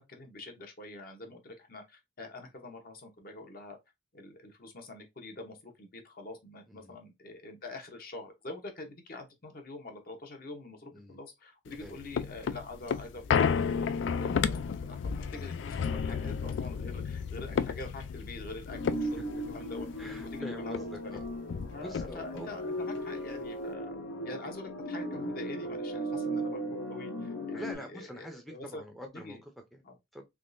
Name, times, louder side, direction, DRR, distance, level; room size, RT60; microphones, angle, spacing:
voice 1, 0.0-3.8 4.1-14.6 14.9-19.9 20.3-21.2 21.7-24.0 24.2-28.8 29.1-29.4 29.8-30.0, left 2 dB, 50° left, 0.8 m, -45 dB
sound 1, 11.7-20.4 20.7-20.8 21.1-22.5 23.0-23.1, left 6 dB, 65° left, 0.3 m, -32 dB
sound 2, 18.7-27.7, right 1 dB, 85° left, 0.8 m, -37 dB
voice 2, 20.0-21.2 21.8-22.6 27.5-29.8 30.1-30.3, right 1 dB, ahead, 0.5 m, -45 dB
3.5 x 3.0 x 2.6 m
head